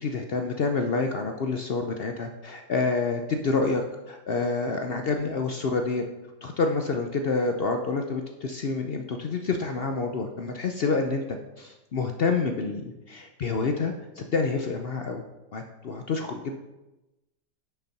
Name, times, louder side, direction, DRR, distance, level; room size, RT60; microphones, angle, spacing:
voice 1, 0.0-6.0 6.4-15.2 15.5-16.6, left 4 dB, 70° left, 4 dB, 0.5 m, -28 dB
7.4 x 5.7 x 5.8 m, 1.0 s
omnidirectional pair, 1.8 m